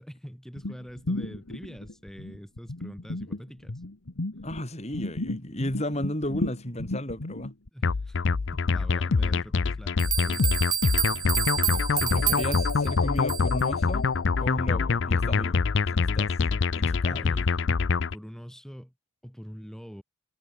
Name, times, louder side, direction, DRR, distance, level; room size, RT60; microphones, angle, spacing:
voice 1, 0.0-3.8 7.7-8.3 8.5-10.8 11.1-11.9 17.1-17.6 17.9-18.9 19.2-20.0, equal, ahead, 6.9 m, -44 dB
sound 1, 0.5-4.6 4.9-7.7, left 2 dB, 75° left, 1.5 m, -34 dB
voice 2, 4.4-7.5 11.9-14.1 14.4-15.7 15.9-16.3 16.8-17.2, left 1 dB, 30° left, 4.7 m, -33 dB
sound 2, 7.8-18.1, left 4 dB, 55° left, 0.5 m, -25 dB
sound 3, 9.6-9.7 10.0-13.7, right 8 dB, 20° right, 1.3 m, -29 dB
head